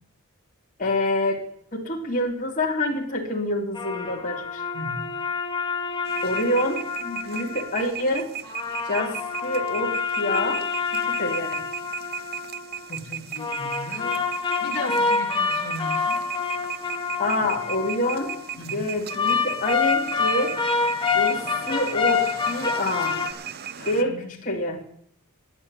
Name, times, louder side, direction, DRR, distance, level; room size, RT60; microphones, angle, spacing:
voice 1, 0.8-1.4 1.7-4.6 6.2-8.3 8.9-11.6 17.2-20.5 21.1-23.2 23.8-24.2 24.4-24.8, left 1 dB, 40° left, -1 dB, 2.9 m, -27 dB
sound 1, 3.7-7.9 8.4-12.8 13.4-18.5 19.1-23.3, left 5 dB, 25° left, 1.8 m, -27 dB
voice 2, 4.7-5.1 12.9-14.3 14.6-16.2 18.6-18.9 23.8-24.3, left 1 dB, 65° left, 0 dB, 2.7 m, -36 dB
sound 2, 6.1-24.0, right 9 dB, 50° right, 0.7 m, -36 dB
11.5 x 8.8 x 9.8 m, 0.64 s
head